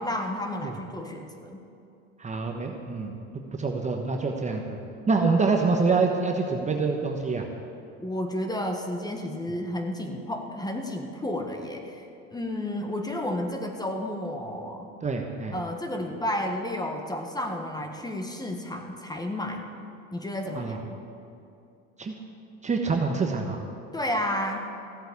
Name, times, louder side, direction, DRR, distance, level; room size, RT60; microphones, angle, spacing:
voice 1, 0.0-1.6 8.0-12.0 12.3-14.9 15.5-19.6 20.1-20.8 23.9-24.6, left 1 dB, 10° left, 4 dB, 1.4 m, -31 dB
voice 2, 2.2-3.1 3.5-4.8 5.1-7.5 15.0-15.5 20.5-20.8 22.0-22.1 22.6-23.6, right 4 dB, 20° right, 2 dB, 1.1 m, -26 dB
14.5 x 7.8 x 8.4 m, 2.6 s
supercardioid pair, 105°, 37 cm